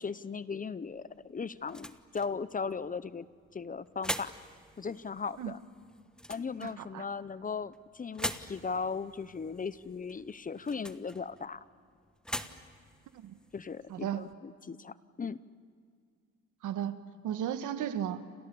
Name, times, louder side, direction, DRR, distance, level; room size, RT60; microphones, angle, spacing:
voice 1, 0.0-3.3 3.5-4.3 4.8-5.6 6.3-11.6 13.5-15.4, left 5 dB, 25° left, 16 dB, 0.8 m, -37 dB
sound 1, 0.8-14.3, equal, 5° left, 1.3 m, -44 dB
voice 2, 13.9-14.2 16.6-16.9 17.2-18.2, right 10 dB, 85° right, 10 dB, 1.6 m, -34 dB
30.0 x 27.0 x 7.0 m, 2.1 s
cardioid pair, 90°, 30 cm